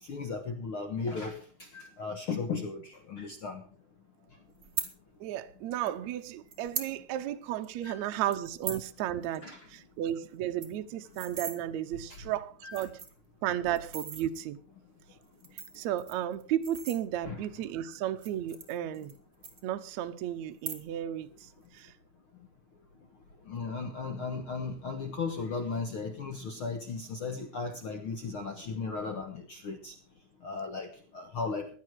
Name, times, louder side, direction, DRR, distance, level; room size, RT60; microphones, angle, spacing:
voice 1, 0.0-3.6 7.8-8.1 9.4-9.7 12.1-12.2 12.6-12.8 17.2-17.4 23.5-29.9 30.4-31.7, left 4 dB, 85° left, 1.1 m, -36 dB
sound 1, 4.6-4.9 5.9-6.0 6.5-6.9 7.3-7.4 7.6-7.9 8.3-8.9 9.2-9.4 9.7-9.8 10.1-10.2 10.4-11.6 12.2-12.3 12.7-13.3 13.8-14.2 15.2-17.4 18.1-19.2 19.4-20.1 20.5-21.1 21.4-21.8, right 6 dB, 40° right, 1.3 m, -39 dB
voice 2, 5.2-13.0 13.4-14.6 15.7-19.1 19.6-21.9, right 11 dB, 90° right, 1.6 m, -34 dB
16.0 x 11.5 x 4.7 m
omnidirectional pair, 4.5 m